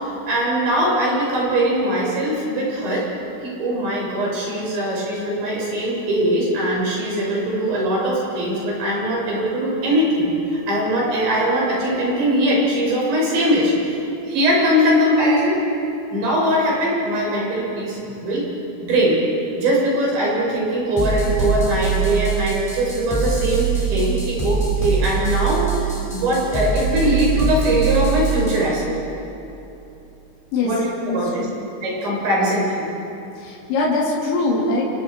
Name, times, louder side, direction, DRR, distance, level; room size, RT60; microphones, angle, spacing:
voice 1, 0.3-3.1 3.4-10.3 10.7-15.6 16.1-18.5 18.8-19.2 19.6-29.0 30.6-31.4 31.8-32.9, equal, 80° right, -4 dB, 9.4 m, -21 dB
sound 1, 21.0-28.7, right 6 dB, 5° left, 4.5 m, -23 dB
voice 2, 31.1-31.5 33.4-34.8, left 3 dB, 85° left, -4 dB, 5.8 m, -22 dB
29.5 x 29.5 x 4.9 m, 3.0 s
omnidirectional pair, 5.2 m